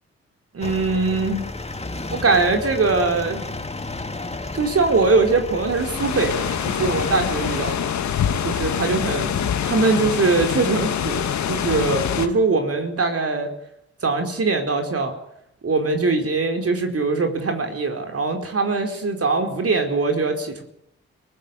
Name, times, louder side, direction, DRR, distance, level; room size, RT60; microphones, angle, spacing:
voice 1, 0.5-1.4 2.1-3.4 4.5-7.9 8.4-13.5 14.0-15.1 15.6-20.6, right 3 dB, 50° right, 4 dB, 4.5 m, -22 dB
sound 1, 0.6-7.7, left 2 dB, 20° left, 2.4 m, -33 dB
sound 2, 5.7-12.3, left 8 dB, 70° left, 2.1 m, -25 dB
22.0 x 16.0 x 9.7 m, 0.77 s
supercardioid pair, 45°, 29 cm